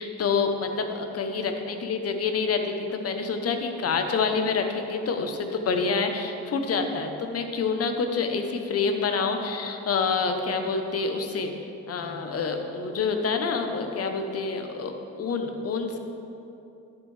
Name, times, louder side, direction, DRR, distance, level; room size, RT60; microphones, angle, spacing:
voice 1, 0.0-11.5 11.9-16.0, left 4 dB, 50° left, 5 dB, 1.0 m, -27 dB
10.5 x 8.1 x 3.4 m, 2.8 s
cardioid pair, 90°, 30 cm